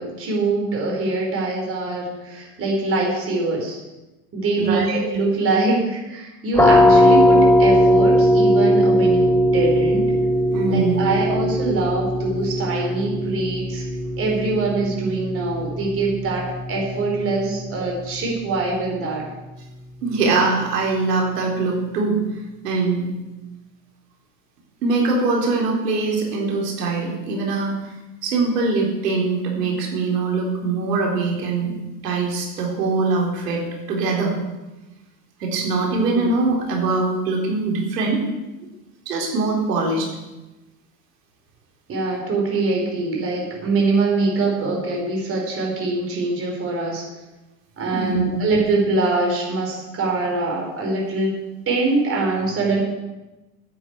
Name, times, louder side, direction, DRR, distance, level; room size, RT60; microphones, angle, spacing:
voice 1, 0.0-3.8 4.3-10.1 10.7-13.8 14.2-16.4 16.7-19.2 36.0-36.3 41.9-47.0 47.8-51.3 51.7-52.8, right 3 dB, 25° right, -1 dB, 4.8 m, -23 dB
voice 2, 4.6-5.0 10.5-11.0 20.0-22.2 22.6-23.1 24.8-27.9 28.2-31.7 32.0-33.6 33.9-34.3 35.4-38.2 39.1-40.1 47.9-48.2, right 3 dB, 70° right, -1 dB, 4.2 m, -22 dB
sound 1, 6.5-18.1, equal, 5° left, 0.6 m, -19 dB
10.5 x 9.4 x 8.2 m, 1.1 s
hypercardioid pair, 120°, 49 cm